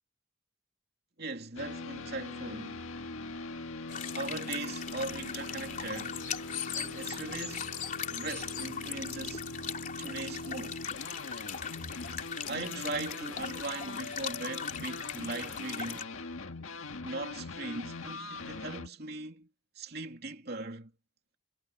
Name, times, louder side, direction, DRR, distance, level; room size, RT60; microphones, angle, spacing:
voice 1, 1.2-2.9 4.1-6.2 6.7-7.8 8.1-9.5 10.0-10.8 12.5-16.1 17.0-19.5 19.7-20.9, right 3 dB, 50° right, 2.9 m, -39 dB
sound 1, 1.6-18.9, left 3 dB, 85° left, 1.8 m, -42 dB
sound 2, 3.9-16.0, left 7 dB, 40° left, 3.7 m, -39 dB
head